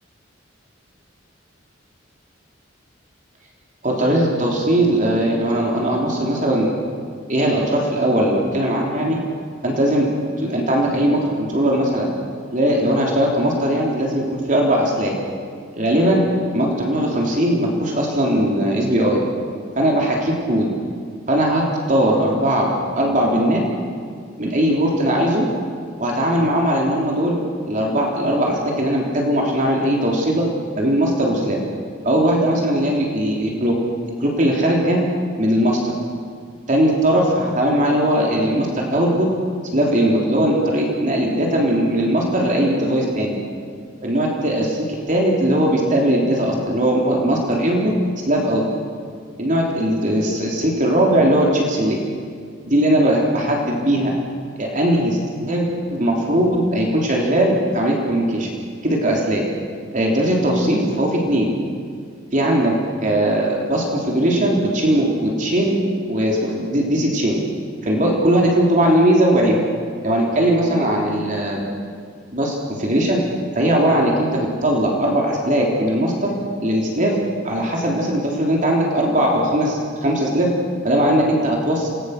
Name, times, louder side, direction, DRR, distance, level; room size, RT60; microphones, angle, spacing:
voice 1, 3.8-6.7 7.3-9.2 9.6-10.1 10.4-12.1 12.5-15.1 15.7-16.3 16.5-19.2 19.8-20.7 21.3-23.6 24.4-25.5 26.0-27.4 27.6-30.4 30.7-31.6 32.0-33.7 34.2-35.0 35.4-35.8 36.7-39.3 39.7-43.3 44.0-44.8 45.1-47.9 48.3-48.7 49.4-52.0 52.7-54.1 54.6-58.5 58.8-59.4 59.9-61.5 62.3-62.7 63.0-65.8 66.1-67.4 67.8-69.6 70.0-71.6 72.3-73.2 73.6-76.3 76.6-77.2 77.4-80.5 80.8-81.9, right 1 dB, 40° right, -1 dB, 3.5 m, -19 dB
27.5 x 19.5 x 6.7 m, 2.1 s
head